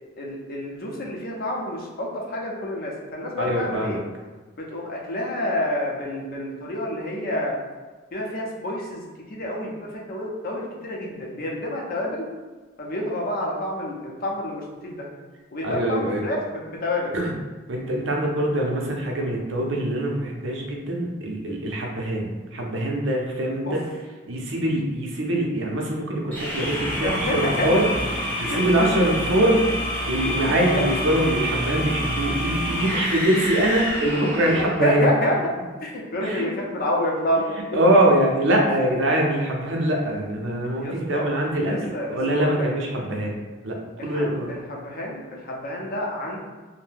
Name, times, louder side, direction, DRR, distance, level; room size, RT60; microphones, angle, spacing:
voice 1, 0.2-4.0 4.6-7.6 8.1-12.3 12.8-15.1 15.5-17.1 23.6-23.8 27.0-27.7 28.4-28.6 30.7-30.8 34.8-35.4 35.8-37.5 40.8-41.3 41.6-42.7 44.0-46.4, left 1 dB, 50° left, -2 dB, 0.6 m, -28 dB
voice 2, 3.4-4.0 15.6-16.3 17.1-17.3 17.7-23.8 24.3-27.9 28.4-29.6 30.1-35.1 36.2-36.4 37.7-44.5, right 1 dB, 70° right, 0 dB, 0.5 m, -23 dB
sound 1, 26.3-34.8, equal, 10° left, 0.6 m, -28 dB
2.6 x 2.1 x 3.4 m, 1.3 s
head